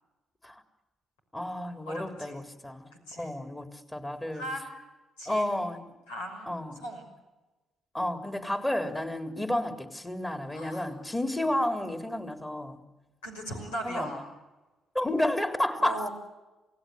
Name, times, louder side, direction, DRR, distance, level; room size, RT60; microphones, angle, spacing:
voice 1, 1.3-2.9 3.2-4.5 5.3-5.9 6.5-6.8 7.9-12.8 13.8-14.2 14.9-16.1, left 1 dB, 20° left, 3.8 m, -31 dB
voice 2, 1.9-2.4 3.1-3.3 4.3-4.8 5.2-5.5 6.1-6.5 6.8-7.1 10.5-10.9 13.2-14.2 15.8-16.1, right 1 dB, 85° left, 5.9 m, -38 dB
28.5 x 18.0 x 8.2 m
hypercardioid pair, 45°, 0 cm